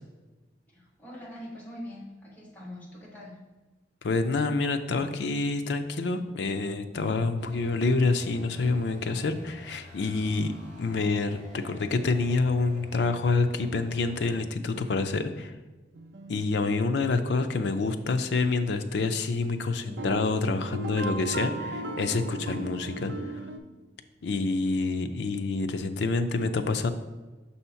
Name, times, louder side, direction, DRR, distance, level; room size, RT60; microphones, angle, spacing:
voice 1, 0.7-3.4, left 1 dB, 10° left, -5 dB, 1.2 m, -43 dB
voice 2, 4.0-10.5 10.8-15.5 16.3-23.1 24.2-26.9, left 3 dB, 65° left, 8 dB, 0.4 m, -27 dB
sound 1, 7.4-14.4, equal, 45° right, 1.3 m, -48 dB
sound 2, 15.9-18.3 19.8-23.6, right 2 dB, 80° right, 0.6 m, -38 dB
6.2 x 2.8 x 5.5 m, 1.2 s
head